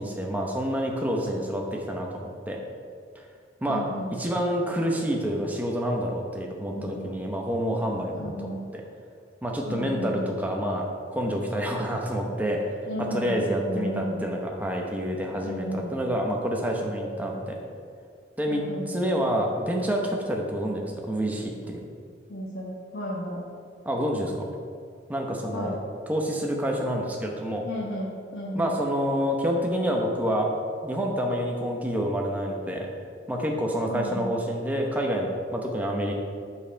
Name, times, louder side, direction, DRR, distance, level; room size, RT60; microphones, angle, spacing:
voice 1, 0.0-2.6 3.2-3.3 3.6-3.8 4.1-8.8 9.4-10.9 11.1-17.6 18.4-21.8 23.8-24.5 25.1-25.8 26.1-27.6 28.5-30.5 30.8-32.9 33.3-36.1, equal, 10° right, 0 dB, 0.8 m, -28 dB
voice 2, 3.7-4.1 6.7-7.1 8.2-8.6 9.7-10.3 12.9-14.3 15.4-16.1 16.9-17.6 18.5-19.1 22.3-23.5 25.5-25.8 27.6-28.8 33.9-34.3, equal, 60° left, -5 dB, 1.0 m, -34 dB
7.1 x 5.4 x 5.0 m, 2.2 s
head